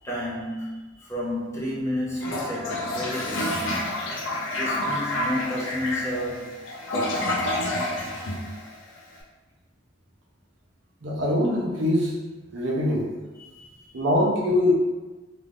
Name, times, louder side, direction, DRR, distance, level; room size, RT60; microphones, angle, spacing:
voice 1, 0.0-3.8 4.5-7.6 13.4-14.1, equal, 15° left, -6 dB, 0.7 m, -32 dB
Toilet flush, 2.2-9.1, left 1 dB, 85° left, 0.6 m, -29 dB
voice 2, 11.0-12.2 12.5-13.1 13.9-14.7, left 1 dB, 70° right, -2 dB, 0.6 m, -23 dB
2.5 x 2.4 x 3.4 m, 1.2 s
head